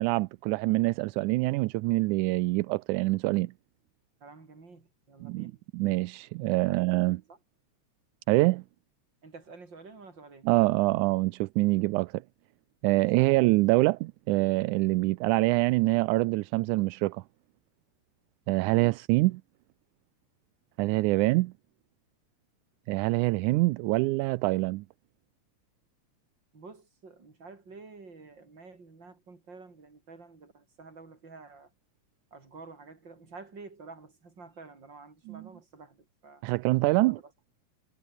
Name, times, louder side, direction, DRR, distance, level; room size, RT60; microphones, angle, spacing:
voice 1, 0.0-3.5 5.2-7.2 8.3-8.6 10.5-12.2 12.8-17.2 18.5-19.4 20.8-21.5 22.9-24.9 35.3-35.4 36.4-37.2, right 21 dB, 85° right, 2.0 m, -25 dB
voice 2, 4.2-5.6 6.7-7.4 9.2-10.5 12.9-13.3 14.9-15.0 26.5-31.7 32.3-36.5 37.0-37.3, right 4 dB, 35° right, 5.1 m, -50 dB
omnidirectional pair, 3.5 m